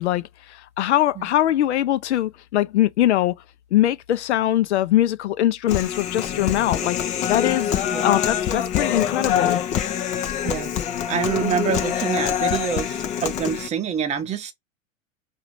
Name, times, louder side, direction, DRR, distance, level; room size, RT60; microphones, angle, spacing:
voice 1, 0.0-3.3 3.7-7.0 7.3-7.7 8.0-9.6, left 13 dB, 55° left, 0.7 m, -22 dB
Human voice, 5.7-13.7, left 9 dB, 20° left, 0.5 m, -25 dB
voice 2, 11.1-14.5, right 7 dB, 15° right, 0.8 m, -26 dB
4.8 x 2.5 x 3.1 m
figure-of-eight pair, 105°, 40 cm